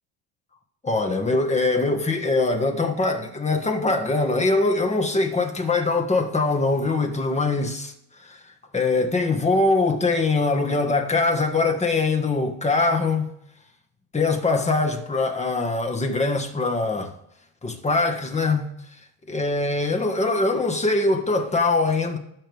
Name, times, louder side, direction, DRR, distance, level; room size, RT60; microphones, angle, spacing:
voice 1, 0.8-7.9 8.2-8.4 8.7-13.3 14.1-17.1 17.6-18.7 19.3-22.2, left 3 dB, 15° left, 1.6 m, -22 dB
19.5 x 6.6 x 3.5 m
supercardioid pair, 100°, 41 cm